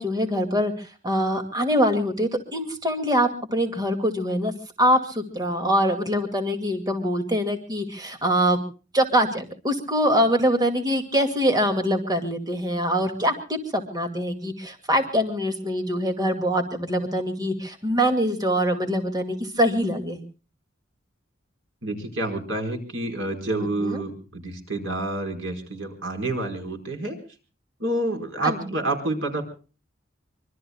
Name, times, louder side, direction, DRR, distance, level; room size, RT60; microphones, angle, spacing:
voice 1, 0.0-4.5 4.8-8.6 8.9-20.2 23.8-24.0 28.4-28.6, equal, 20° right, 6 dB, 2.3 m, -24 dB
voice 2, 21.8-27.2 27.8-29.4, right 2 dB, 85° right, 4 dB, 4.9 m, -28 dB
25.5 x 24.0 x 2.3 m, 0.36 s
head